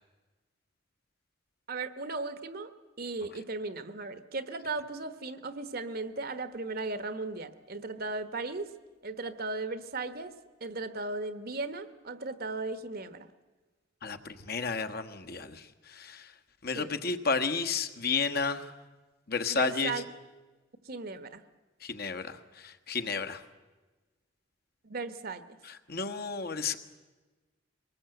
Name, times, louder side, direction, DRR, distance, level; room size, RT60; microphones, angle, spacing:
voice 1, 1.7-8.7 9.0-10.3 10.6-13.3 16.7-16.9 19.5-20.0 20.8-21.4 24.8-25.4, right 3 dB, 50° right, 12 dB, 1.2 m, -36 dB
voice 2, 14.0-15.6 16.0-16.2 16.6-18.7 19.3-19.9 21.8-22.4 22.6-23.4 25.9-26.8, left 5 dB, 50° left, 8 dB, 1.3 m, -31 dB
23.0 x 20.0 x 7.9 m, 1.2 s
head